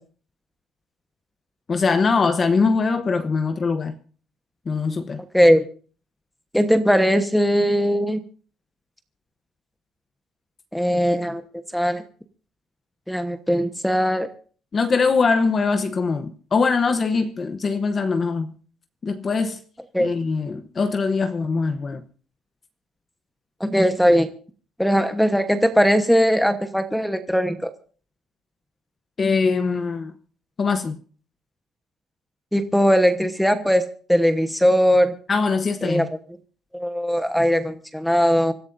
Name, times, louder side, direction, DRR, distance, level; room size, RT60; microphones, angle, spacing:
voice 1, 1.7-3.9 4.7-5.2 14.7-18.5 19.0-19.6 20.0-22.0 29.2-30.1 30.6-31.0 35.3-36.1, left 4 dB, 30° left, 0.9 m, -22 dB
voice 2, 5.3-5.6 6.5-8.2 10.7-11.4 11.7-12.0 13.1-14.3 19.9-20.1 23.6-24.3 24.8-27.7 32.5-35.1 35.8-36.1 36.7-38.5, equal, ahead, 1.1 m, -19 dB
26.0 x 15.0 x 2.6 m
cardioid pair, 140°, 0 cm